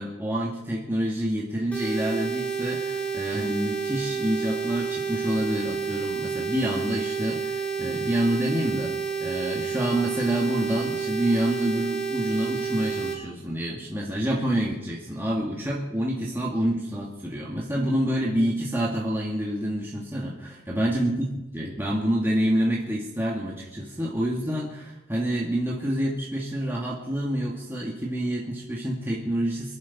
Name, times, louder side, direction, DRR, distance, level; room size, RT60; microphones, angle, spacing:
voice 1, 0.0-8.9 9.2-29.8, right 1 dB, 10° right, -4 dB, 1.8 m, -27 dB
sound 1, 1.7-13.1, right 5 dB, 5° left, 2.5 m, -30 dB
23.5 x 11.0 x 4.1 m, 0.99 s
head